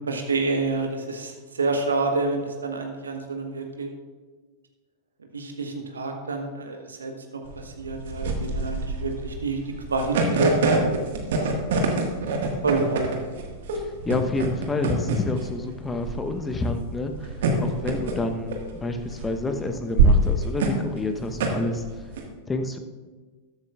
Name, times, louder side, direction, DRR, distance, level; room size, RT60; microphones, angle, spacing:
voice 1, 0.1-3.9 5.3-9.6 9.9-11.0 11.3-11.5 12.6-13.1, right 3 dB, 75° right, 3 dB, 1.3 m, -28 dB
sound 1, 7.5-22.2, right 3 dB, 55° right, 1.7 m, -25 dB
voice 2, 14.0-21.8 22.5-22.8, left 2 dB, 15° left, 6 dB, 1.0 m, -29 dB
14.0 x 12.0 x 2.5 m, 1.4 s
figure-of-eight pair, 90°, 0 cm